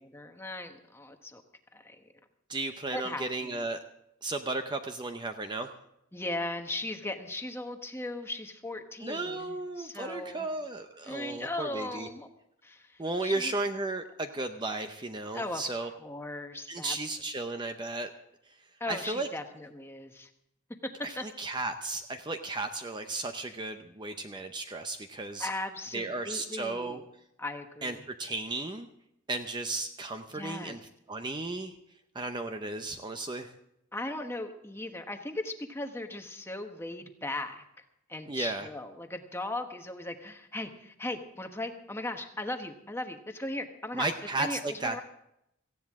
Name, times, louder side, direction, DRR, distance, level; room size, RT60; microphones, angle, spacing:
voice 1, 0.0-1.4 1.7-2.1 2.9-3.5 6.1-10.5 11.1-12.3 12.6-13.5 15.3-17.0 18.8-20.3 21.2-21.3 25.4-27.0 27.4-28.0 30.3-30.8 33.9-37.6 38.1-44.1 44.4-45.0, left 2 dB, 10° left, 5 dB, 1.1 m, -38 dB
voice 2, 2.5-3.8 4.2-5.7 9.0-12.1 13.0-15.9 16.7-18.1 18.5-18.6 18.9-19.3 21.0-25.5 25.9-27.0 27.8-28.9 29.3-30.8 31.1-31.8 32.1-33.5 38.3-38.7 43.9-45.0, right 2 dB, 20° right, 7 dB, 0.6 m, -34 dB
18.0 x 15.0 x 3.6 m, 0.80 s
head